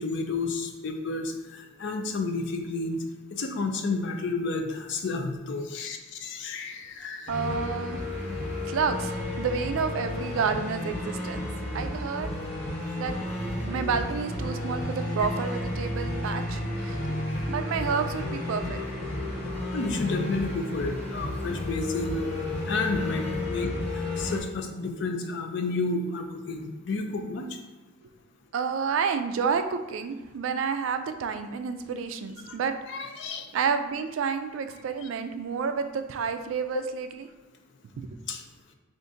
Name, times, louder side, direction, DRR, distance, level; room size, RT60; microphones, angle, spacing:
voice 1, 0.0-3.0 3.4-7.3 19.7-22.3 22.7-27.4 32.4-32.5 32.9-33.5 35.0-35.1 36.7-36.8 38.3-38.4, left 3 dB, 55° left, 5 dB, 0.4 m, -31 dB
sound 1, 7.3-24.4, left 1 dB, 30° left, 0.8 m, -32 dB
voice 2, 7.3-8.0 8.7-11.5 11.7-12.3 13.0-13.2 13.7-17.1 17.5-18.8 19.1-19.2 28.5-32.7 33.5-37.2 38.0-38.1, right 6 dB, 70° right, 8 dB, 0.3 m, -30 dB
3.7 x 2.5 x 3.8 m, 1.2 s
head